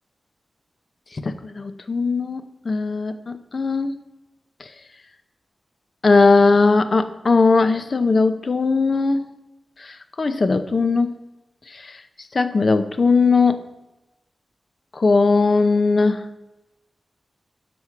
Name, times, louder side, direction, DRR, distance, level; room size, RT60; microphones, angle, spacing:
voice 1, 1.2-3.9 6.0-9.3 9.8-11.1 12.3-13.6 15.0-16.2, left 3 dB, 55° left, 10 dB, 0.8 m, -18 dB
9.7 x 6.2 x 5.9 m, 0.99 s
wide cardioid pair, 70°, 0 cm